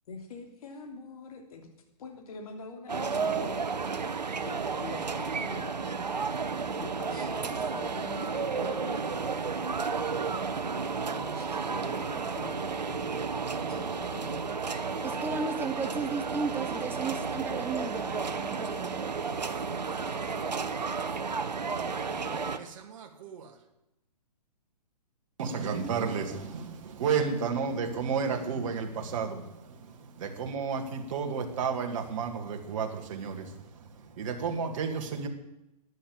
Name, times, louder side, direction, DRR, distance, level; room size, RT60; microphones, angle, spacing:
voice 1, 0.1-1.7 2.0-3.6 4.4-5.8 6.8-9.3 11.0-14.5, left 3 dB, 60° left, 3.2 m, -45 dB
sound 1, 2.9-22.6, right 5 dB, 85° right, 1.2 m, -32 dB
voice 2, 15.0-19.1, right 4 dB, 10° right, 1.0 m, -34 dB
voice 3, 21.7-23.6 25.4-35.3, right 6 dB, 50° right, 2.4 m, -32 dB
14.0 x 10.0 x 7.3 m
hypercardioid pair, 130°, 21 cm